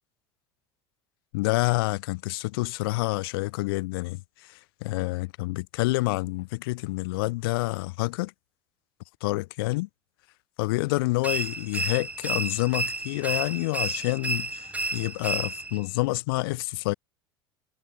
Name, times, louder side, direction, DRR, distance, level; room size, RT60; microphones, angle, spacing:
voice 1, 1.3-8.3 9.2-9.9 10.6-16.9, left 22 dB, 70° left, 2.3 m, -28 dB
sound 1, 11.2-15.9, right 2 dB, 10° right, 6.7 m, -31 dB
hypercardioid pair, 75°, 13 cm